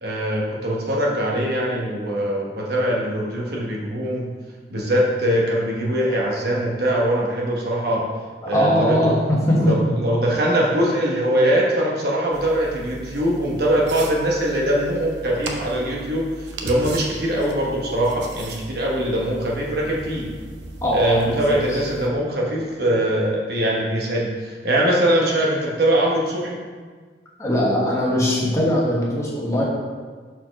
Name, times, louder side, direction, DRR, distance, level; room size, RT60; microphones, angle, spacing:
voice 1, 0.0-4.3 4.7-8.0 8.4-9.2 9.6-20.3 20.9-26.6, right 1 dB, 60° right, -3 dB, 1.1 m, -22 dB
voice 2, 8.5-9.6 9.9-10.0 20.8-21.6 27.4-29.6, equal, 15° left, -4 dB, 1.2 m, -21 dB
sound 1, 12.3-22.1, right 2 dB, 80° right, 0.7 m, -37 dB
4.5 x 4.3 x 5.8 m, 1.5 s
head